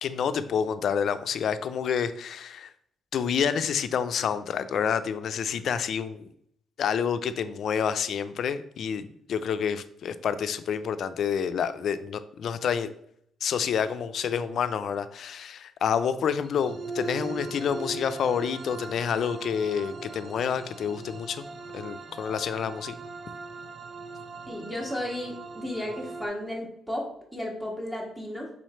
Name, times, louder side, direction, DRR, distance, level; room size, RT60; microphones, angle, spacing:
voice 1, 0.0-2.7 3.1-6.3 6.8-12.9 13.4-21.5 21.7-22.9, left 7 dB, 65° left, 12 dB, 0.4 m, -28 dB
sound 1, 16.4-26.3, right 3 dB, 45° right, 0.6 m, -40 dB
voice 2, 24.5-28.5, left 1 dB, 10° right, -1 dB, 1.5 m, -34 dB
4.0 x 3.1 x 4.2 m, 0.70 s
cardioid pair, 90°, 0 cm